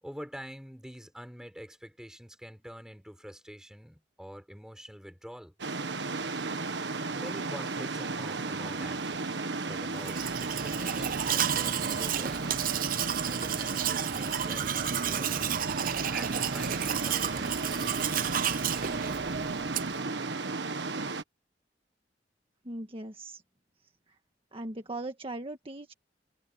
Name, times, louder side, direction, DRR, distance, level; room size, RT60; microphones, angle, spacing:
voice 1, 0.0-5.5 7.2-12.7 13.3-15.7 16.1-18.3, equal, 5° right, 5.2 m, -46 dB
sound 1, 5.6-21.2, right 3 dB, 90° right, 1.5 m, -34 dB
Domestic sounds home sounds, 10.0-20.1, right 8 dB, 55° right, 0.7 m, -32 dB
voice 2, 22.6-23.4 23.8-24.2 24.5-25.9, right 2 dB, 30° right, 1.6 m, -39 dB
head